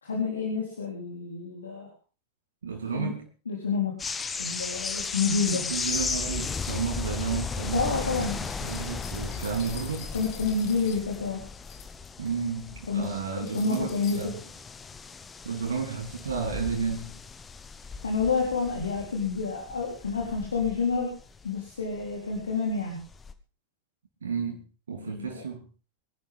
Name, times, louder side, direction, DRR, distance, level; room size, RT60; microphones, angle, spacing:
voice 1, 0.0-1.9 2.9-3.1 3.5-4.0 4.4-6.0 7.7-8.4 10.1-11.4 12.9-14.3 18.0-21.1 21.4-23.0 25.0-25.4, left 4 dB, 70° left, 3.6 m, -29 dB
voice 2, 2.6-3.3 5.5-10.1 12.2-14.4 15.4-17.2 24.2-25.6, right 6 dB, 70° right, 3.2 m, -32 dB
sound 1, 4.0-22.6 22.9-23.3, left 5 dB, 15° left, 1.3 m, -36 dB
sound 2, 6.1-12.3 12.6-13.1 13.5-14.3, left 9 dB, 45° left, 2.7 m, -47 dB
23.5 x 11.5 x 3.6 m
figure-of-eight pair, 90°, 0 cm